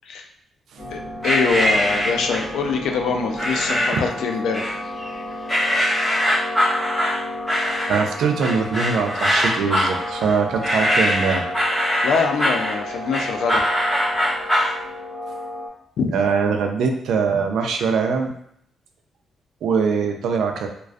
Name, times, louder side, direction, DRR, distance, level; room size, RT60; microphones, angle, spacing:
sound 1, 0.8-15.7, left 1 dB, 60° left, 1.1 m, -32 dB
voice 1, 0.9-4.8 12.0-13.7 16.0-16.1, left 5 dB, 85° left, 4 dB, 0.3 m, -24 dB
sound 2, 1.2-2.6 3.4-4.1 4.5-5.1 5.5-14.8, equal, 15° left, 0.9 m, -22 dB
voice 2, 7.9-11.5 16.1-18.3 19.6-20.7, right 5 dB, 80° right, 4 dB, 0.3 m, -22 dB
2.4 x 2.2 x 2.3 m, 0.70 s
cardioid pair, 120°, 0 cm